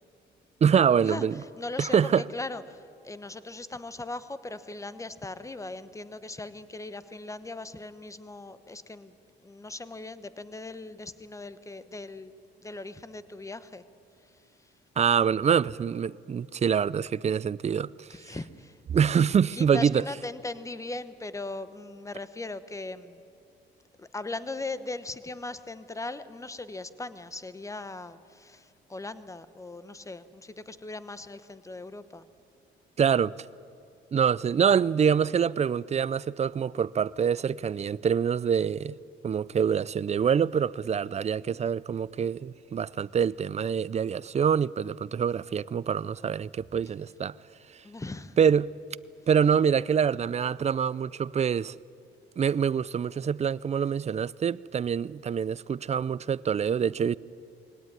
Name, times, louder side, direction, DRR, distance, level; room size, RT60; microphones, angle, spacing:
voice 1, 0.6-1.3 1.8-2.2 15.0-18.1 18.9-20.0 33.0-33.3 34.1-39.0 39.2-47.3 47.7-47.8 48.4-48.7 49.3-51.8 52.4-57.2, right 7 dB, 35° right, 0.5 m, -25 dB
voice 2, 1.6-9.2 9.4-12.3 12.6-13.8 14.2-14.7 18.1-18.8 19.5-23.2 24.0-32.3 47.8-48.4, left 2 dB, 15° left, 1.0 m, -39 dB
22.0 x 17.5 x 9.6 m
cardioid pair, 90°, 20 cm